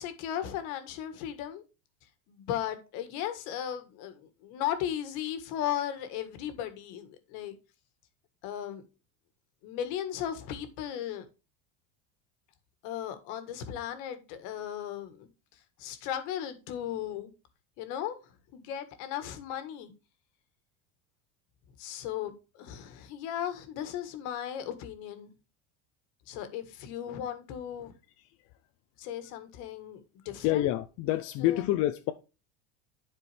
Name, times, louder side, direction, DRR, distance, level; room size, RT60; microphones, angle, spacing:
voice 1, 0.0-1.6 2.3-7.6 8.4-8.8 9.6-11.2 12.8-15.3 15.8-17.3 17.8-18.1 18.5-19.9 21.8-25.3 26.3-27.9 29.0-30.0 30.2-30.7 31.4-31.6, left 10 dB, 60° left, 1.6 m, -36 dB
voice 2, 30.4-32.1, left 15 dB, 45° left, 0.5 m, -27 dB
11.0 x 4.5 x 3.4 m
cardioid pair, 150°, 35 cm